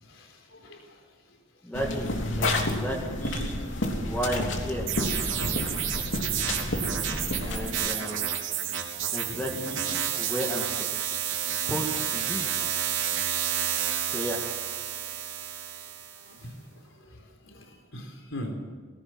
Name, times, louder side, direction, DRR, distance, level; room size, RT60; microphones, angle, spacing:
voice 1, 0.0-1.0 2.4-2.7 3.7-3.9 5.3-5.6 6.0-6.1 9.2-9.6 16.1-18.5, left 1 dB, 85° left, 3 dB, 4.0 m, -42 dB
voice 2, 1.6-2.1 2.4-2.5 2.8-3.6 4.1-4.9 7.4-8.3 9.1-9.9 10.2-10.7 11.7-11.8 12.1-12.5 14.1-14.4, equal, 10° left, -2 dB, 2.2 m, -32 dB
sound 1, 1.7-7.8, left 1 dB, 70° left, 3.2 m, -30 dB
sound 2, 4.9-16.3, right 9 dB, 80° right, 3.7 m, -30 dB
19.5 x 17.5 x 8.1 m, 1.5 s
head